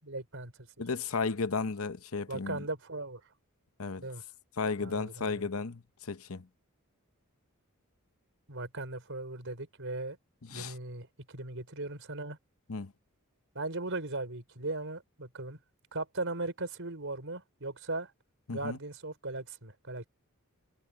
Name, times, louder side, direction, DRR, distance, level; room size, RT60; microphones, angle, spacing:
voice 1, 0.0-0.7 2.3-3.2 4.0-4.2 4.8-5.5 8.5-10.2 10.5-12.4 13.5-15.6 15.9-18.1 18.5-20.1, right 2 dB, 60° right, 5.1 m, -38 dB
voice 2, 0.8-2.6 3.8-4.1 4.6-6.5 10.4-10.7 12.7-12.9 18.5-18.8, left 4 dB, 65° left, 0.9 m, -34 dB
head